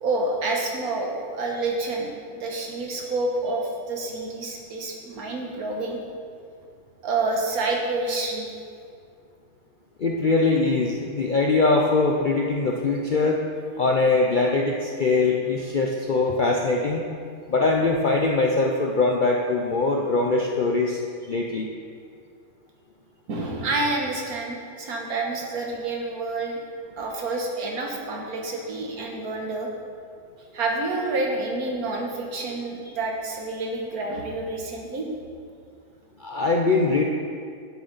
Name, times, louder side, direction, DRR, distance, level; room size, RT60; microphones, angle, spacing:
voice 1, 0.0-6.0 7.0-8.5 23.3-26.6 27.0-29.7 30.5-35.2, right 2 dB, 75° right, 0 dB, 1.7 m, -28 dB
voice 2, 10.0-13.4 13.8-17.1 17.5-21.0 21.3-21.7 36.2-37.0, left 3 dB, 55° left, 0 dB, 0.5 m, -22 dB
10.0 x 7.7 x 4.0 m, 2.2 s
omnidirectional pair, 1.6 m